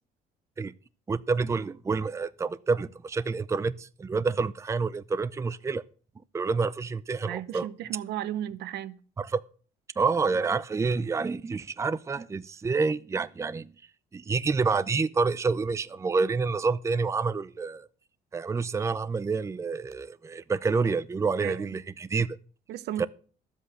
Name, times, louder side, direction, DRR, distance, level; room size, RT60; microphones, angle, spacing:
voice 1, 1.1-5.8 6.3-7.7 9.2-9.4 10.0-13.7 14.1-17.9 18.3-22.4 23.0-23.1, right 4 dB, 15° right, 0.5 m, -28 dB
voice 2, 7.2-9.0 21.4-21.8 22.7-23.1, right 11 dB, 80° right, 1.0 m, -34 dB
12.0 x 7.8 x 6.5 m
cardioid pair, 110°, 17 cm